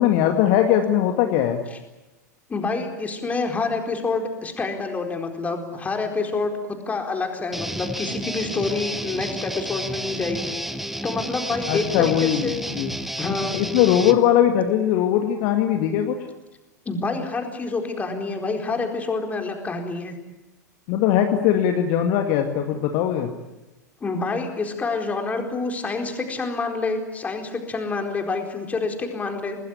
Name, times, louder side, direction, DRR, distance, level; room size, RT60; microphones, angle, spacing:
voice 1, 0.0-1.6 11.7-12.9 13.5-16.2 20.9-23.3, left 10 dB, 45° left, 5 dB, 2.1 m, -20 dB
voice 2, 2.5-10.5 11.0-12.6 13.2-13.5 16.9-20.2 24.0-29.6, left 3 dB, 15° left, 4 dB, 4.3 m, -27 dB
Guitar, 7.5-14.2, right 1 dB, ahead, 1.3 m, -31 dB
26.5 x 19.5 x 9.6 m, 1.1 s
figure-of-eight pair, 90°, 10 cm